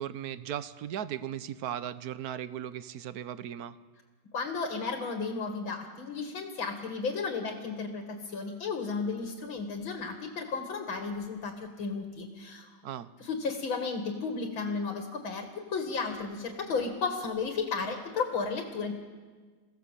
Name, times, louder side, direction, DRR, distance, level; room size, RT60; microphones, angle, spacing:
voice 1, 0.0-3.8 12.8-13.1, right 10 dB, 60° right, 14 dB, 1.2 m, -37 dB
voice 2, 4.3-12.7 13.2-18.9, left 4 dB, 75° left, 4 dB, 2.9 m, -33 dB
29.0 x 17.0 x 7.6 m, 1.4 s
omnidirectional pair, 2.2 m